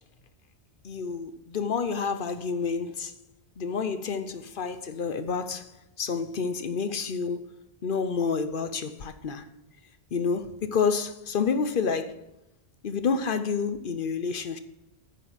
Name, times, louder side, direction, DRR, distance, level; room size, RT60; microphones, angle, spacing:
voice 1, 0.8-3.1 3.6-5.7 6.0-9.5 10.1-12.2 12.8-14.6, left 5 dB, 55° left, 0.9 m, -29 dB
9.2 x 6.1 x 7.4 m
omnidirectional pair, 1.1 m